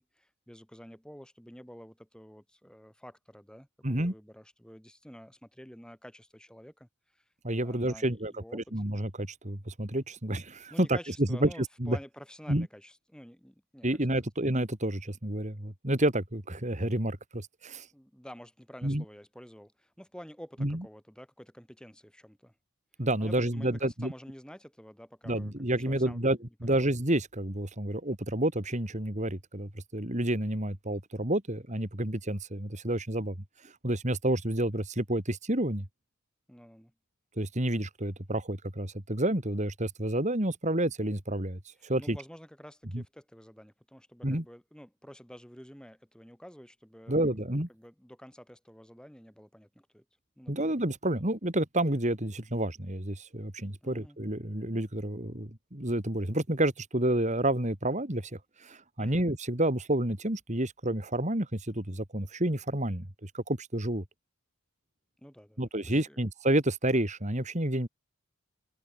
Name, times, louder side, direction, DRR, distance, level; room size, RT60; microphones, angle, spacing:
voice 1, 0.0-7.2 7.6-8.6 10.7-13.9 17.9-22.5 23.2-26.3 26.7-26.8 36.5-36.9 41.8-47.3 47.7-50.0 50.4-50.8 53.8-54.2 59.0-59.3 65.2-66.2, equal, 5° left, 5.4 m, -50 dB
voice 2, 3.8-4.1 7.4-11.5 11.8-12.0 12.5-12.7 13.8-17.9 18.8-19.0 20.6-20.8 23.0-24.1 25.3-33.4 33.6-35.9 37.4-42.2 42.9-43.0 44.2-44.4 47.1-47.7 50.5-64.0 65.6-67.9, right 1 dB, 30° right, 2.8 m, -30 dB
head